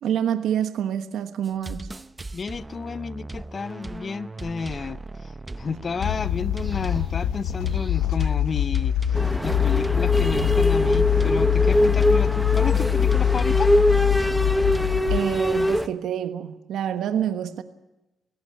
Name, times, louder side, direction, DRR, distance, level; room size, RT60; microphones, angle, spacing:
voice 1, 0.0-1.9 15.1-17.6, right 9 dB, 75° right, 1.3 m, -27 dB
sound 1, 1.4-14.9, right 2 dB, 20° right, 0.7 m, -38 dB
voice 2, 2.3-5.0 5.6-8.9 9.4-13.7, left 5 dB, 40° left, 0.7 m, -31 dB
sound 2, 6.0-15.2, left 12 dB, 90° left, 0.7 m, -23 dB
sound 3, 9.1-15.9, equal, ahead, 1.0 m, -23 dB
18.5 x 17.0 x 9.8 m
cardioid pair, 90°, 0 cm